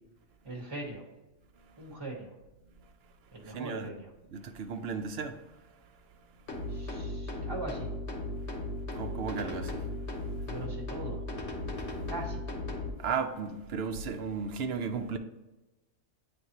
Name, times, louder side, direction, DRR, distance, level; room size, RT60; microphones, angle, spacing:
voice 1, 0.4-1.0 1.8-2.3 3.3-4.1 6.7-7.9 10.5-11.2 12.1-12.6, right 2 dB, 20° right, 1.0 m, -41 dB
voice 2, 1.5-1.9 2.8-3.9 4.3-6.9 8.4-8.6 8.9-10.6 11.7-12.1 13.0-15.2, right 5 dB, 65° right, 0.7 m, -37 dB
sound 1, 6.5-12.9, left 2 dB, 65° left, 1.2 m, -36 dB
9.2 x 3.5 x 2.9 m
omnidirectional pair, 1.3 m